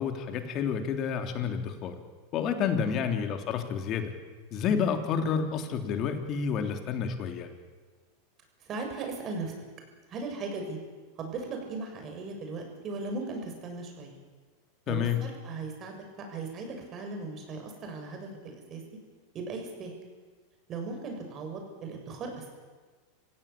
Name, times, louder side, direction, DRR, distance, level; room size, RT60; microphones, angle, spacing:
voice 1, 0.0-1.9 2.3-4.1 4.5-7.5 14.9-15.2, left 7 dB, 45° left, 6 dB, 3.4 m, -29 dB
voice 2, 8.6-9.5 10.1-10.8 11.2-14.1 14.9-18.8 19.3-19.9 20.7-22.4, right 3 dB, 40° right, 3 dB, 7.3 m, -37 dB
27.5 x 16.0 x 8.7 m, 1.4 s
hypercardioid pair, 100°, 0 cm